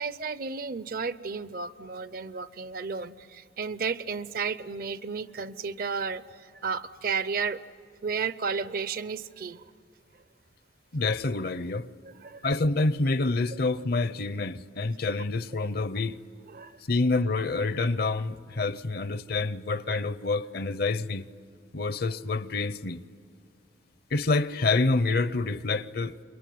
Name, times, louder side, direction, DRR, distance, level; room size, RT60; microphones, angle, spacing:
voice 1, 0.0-7.6 8.0-9.6 12.0-12.5 16.5-16.8, right 5 dB, 50° right, 0.6 m, -33 dB
voice 2, 10.9-11.9 12.4-16.2 16.9-21.3 21.7-23.0 24.1-26.1, left 3 dB, 55° left, 0.6 m, -27 dB
27.5 x 22.0 x 9.4 m
head